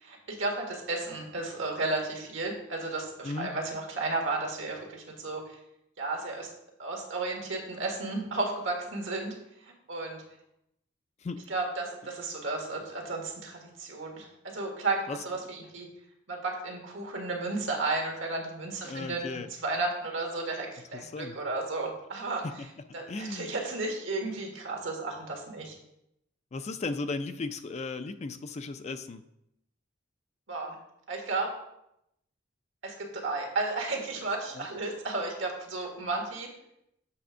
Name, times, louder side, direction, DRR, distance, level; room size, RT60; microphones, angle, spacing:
voice 1, 0.0-5.6 6.0-6.5 6.8-9.3 9.6-10.2 11.5-15.9 16.3-22.4 22.9-25.7 30.5-30.7 31.1-31.5 32.8-36.5, right 3 dB, 75° right, 1 dB, 1.7 m, -33 dB
voice 2, 18.8-19.5 20.9-21.4 22.4-22.7 23.1-23.5 26.5-29.2 34.5-34.7, left 3 dB, 35° left, 10 dB, 0.4 m, -36 dB
7.6 x 3.4 x 6.2 m, 0.80 s
head